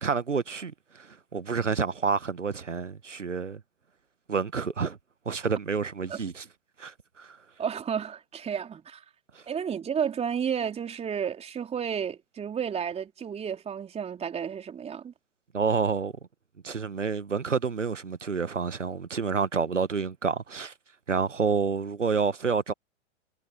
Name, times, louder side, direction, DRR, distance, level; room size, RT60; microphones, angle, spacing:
voice 1, 0.0-3.6 4.3-5.0 5.3-6.4 6.8-7.4 9.3-9.4 15.5-16.1 16.6-20.7 21.1-22.7, right 5 dB, 85° right, 1.2 m, -29 dB
voice 2, 7.6-9.0 9.5-15.1, right 7 dB, 15° right, 3.4 m, -32 dB
figure-of-eight pair, 100°, 36 cm